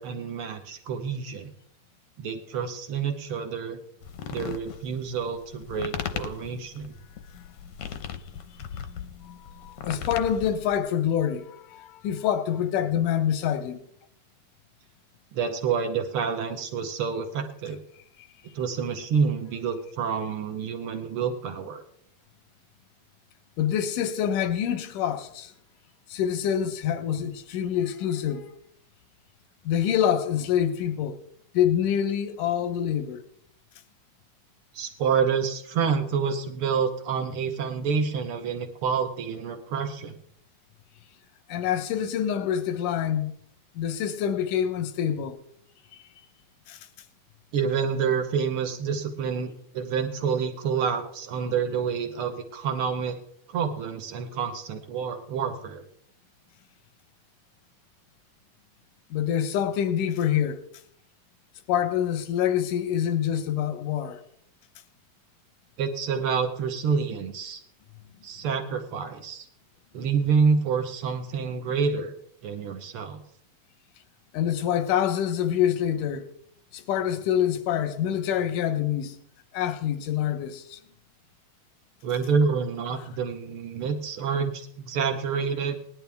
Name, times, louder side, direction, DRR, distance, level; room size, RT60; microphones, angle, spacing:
voice 1, 0.0-1.5 2.2-3.8 4.3-7.0 15.3-17.8 18.5-21.8 34.7-40.2 47.5-53.2 53.5-55.8 65.8-67.6 68.2-69.5 69.9-72.1 72.4-73.2 82.0-85.8, right 6 dB, 65° right, 1.4 m, -28 dB
sound 1, 4.0-10.8, left 8 dB, 70° left, 1.4 m, -37 dB
voice 2, 8.9-13.8 18.2-18.3 23.6-25.5 26.1-28.5 29.7-31.2 31.5-33.2 41.5-43.3 43.8-45.4 46.7-46.9 59.1-60.6 61.7-64.2 74.3-76.3 76.7-79.2 79.5-80.8, left 9 dB, 90° left, 2.5 m, -26 dB
19.0 x 11.0 x 3.5 m
omnidirectional pair, 3.6 m